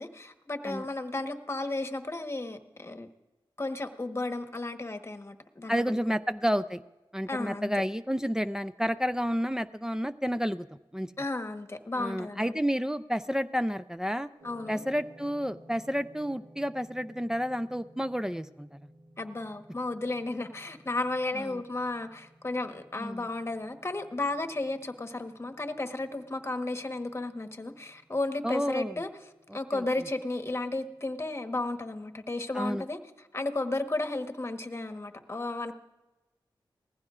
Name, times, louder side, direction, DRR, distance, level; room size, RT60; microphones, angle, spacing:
voice 1, 0.0-3.1 3.6-6.0 7.3-7.7 11.2-12.5 14.4-14.8 19.2-29.1 29.5-33.0 33.3-35.7, left 2 dB, 30° left, 7 dB, 1.2 m, -33 dB
voice 2, 5.7-6.8 7.1-11.1 12.0-14.3 14.7-18.9 21.3-21.6 23.0-23.3 28.4-29.0 29.5-29.8 32.5-32.8, equal, 5° right, 10 dB, 0.4 m, -30 dB
sound 1, 14.4-32.6, right 1 dB, 65° right, 2.6 m, -57 dB
19.5 x 15.0 x 2.5 m, 1.1 s
cardioid pair, 55°, 9 cm